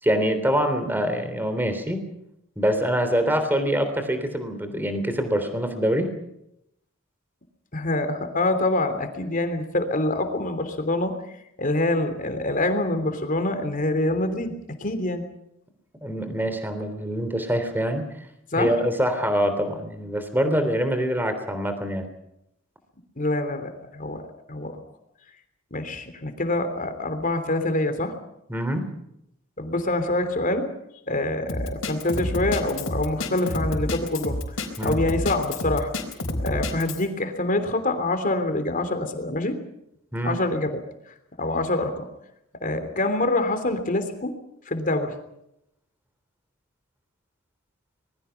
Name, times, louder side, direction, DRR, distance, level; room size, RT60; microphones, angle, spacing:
voice 1, 0.0-2.0 2.6-6.1 16.0-18.0 18.6-22.1 28.5-28.9 34.8-35.0 40.1-40.4, equal, 10° right, 8 dB, 3.2 m, -24 dB
voice 2, 7.7-11.2 11.6-15.2 18.5-18.7 23.2-24.2 24.5-24.8 25.7-28.1 29.6-30.7 31.1-34.6 34.8-35.9 36.4-39.6 40.2-42.0 42.6-44.3 44.7-45.1, left 2 dB, 40° left, 8 dB, 3.2 m, -25 dB
Drum kit, 31.5-37.0, left 1 dB, 80° left, 4.4 m, -28 dB
25.5 x 21.0 x 5.9 m, 0.80 s
head